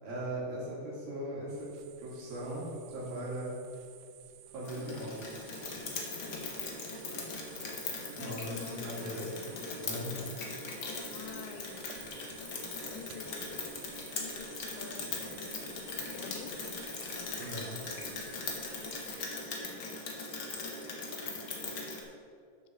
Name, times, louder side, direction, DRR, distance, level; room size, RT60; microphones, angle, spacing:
voice 1, 0.0-3.6 4.5-5.6 8.1-9.3 9.8-10.3 17.4-17.8, right 1 dB, 70° right, -5 dB, 4.4 m, -39 dB
sound 1, 1.5-19.2, right 10 dB, 85° right, 1.8 m, -54 dB
Rain, 4.7-22.0, left 3 dB, 65° left, 1.2 m, -40 dB
voice 2, 8.2-9.7 11.1-11.9 12.9-13.6 14.2-16.9 18.8-20.1 20.6-20.7, left 7 dB, 90° left, 7 dB, 2.7 m, -49 dB
10.0 x 6.9 x 6.7 m, 2.4 s
omnidirectional pair, 4.5 m